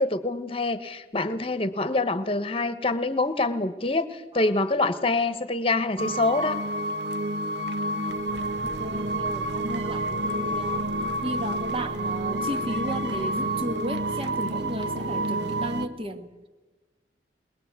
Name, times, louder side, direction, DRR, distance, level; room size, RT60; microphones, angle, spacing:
voice 1, 0.0-6.6 8.9-9.0, left 2 dB, 30° left, 12 dB, 1.2 m, -26 dB
sound 1, 6.0-15.9, right 1 dB, 80° right, 1.1 m, -29 dB
voice 2, 7.7-8.2 8.6-10.9 11.2-16.3, equal, 30° right, 8 dB, 1.6 m, -34 dB
21.5 x 21.0 x 8.3 m, 1.2 s
head